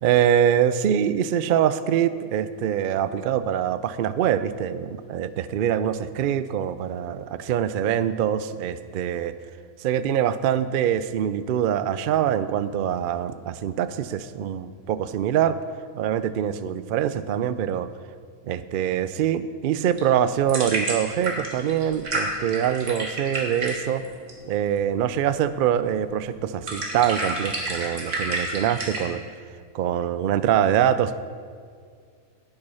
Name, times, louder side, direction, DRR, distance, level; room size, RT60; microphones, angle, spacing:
voice 1, 0.0-9.3 9.8-15.6 15.9-17.9 18.4-24.0 24.5-29.2 29.7-31.1, right 9 dB, 80° right, 13 dB, 0.4 m, -24 dB
sound 1, 19.8-29.1, right 2 dB, 60° right, 2.0 m, -31 dB
10.5 x 8.0 x 5.5 m, 2.1 s
omnidirectional pair, 1.4 m